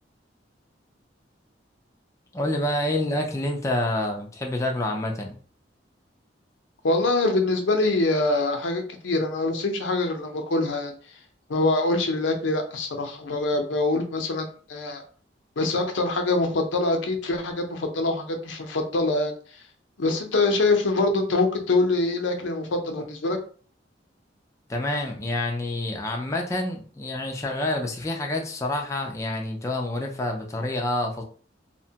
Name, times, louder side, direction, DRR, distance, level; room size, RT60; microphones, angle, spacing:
voice 1, 2.3-5.4 24.7-31.2, left 1 dB, 15° left, 1 dB, 0.4 m, -28 dB
voice 2, 6.8-10.9 11.5-15.0 15.6-19.3 20.0-23.4, left 2 dB, 85° left, 4 dB, 0.6 m, -24 dB
2.8 x 2.1 x 2.7 m, 0.42 s
head